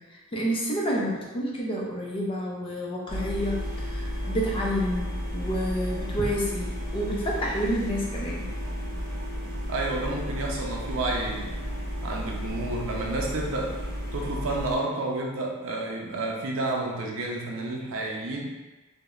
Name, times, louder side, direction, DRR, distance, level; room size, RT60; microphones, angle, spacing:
voice 1, 0.0-8.5, equal, 25° left, -3 dB, 0.4 m, -29 dB
sound 1, 3.1-14.8, equal, 40° right, 0.9 m, -33 dB
voice 2, 9.7-11.6 12.0-13.8 14.1-18.6, right 2 dB, 65° right, -1 dB, 0.5 m, -30 dB
3.0 x 2.0 x 2.3 m, 1.1 s
head